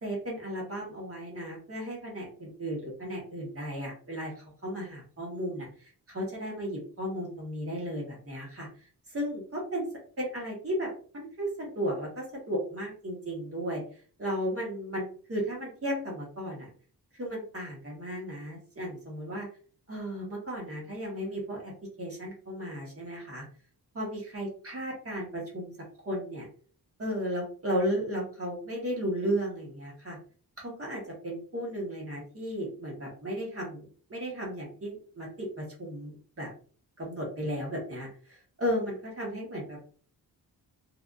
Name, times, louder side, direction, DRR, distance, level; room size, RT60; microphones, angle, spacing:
voice 1, 0.0-5.7 6.1-8.7 9.1-9.8 10.2-13.8 14.2-16.7 17.2-19.5 19.9-23.4 23.9-25.7 26.0-26.5 27.0-30.2 30.6-36.5 37.0-39.9, equal, 35° right, -3 dB, 1.2 m, -35 dB
3.3 x 2.5 x 2.4 m, 0.42 s
wide cardioid pair, 160°, 38 cm